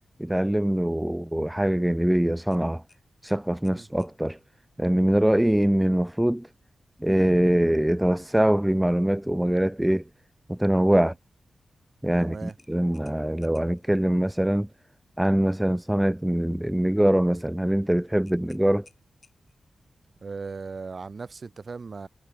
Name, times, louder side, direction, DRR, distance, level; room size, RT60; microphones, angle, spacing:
voice 1, 0.2-2.8 3.2-4.4 4.8-6.5 7.0-10.0 10.5-11.1 12.0-14.7 15.2-18.9, right 1 dB, 10° right, 0.3 m, -23 dB
sound 1, 2.5-4.2 6.8-7.0 7.5-7.6 12.5-13.9 18.2-19.7, left 4 dB, 45° left, 8.0 m, -60 dB
voice 2, 12.2-12.5 20.2-22.1, right 4 dB, 50° right, 2.9 m, -38 dB
cardioid pair, 70°, 0 cm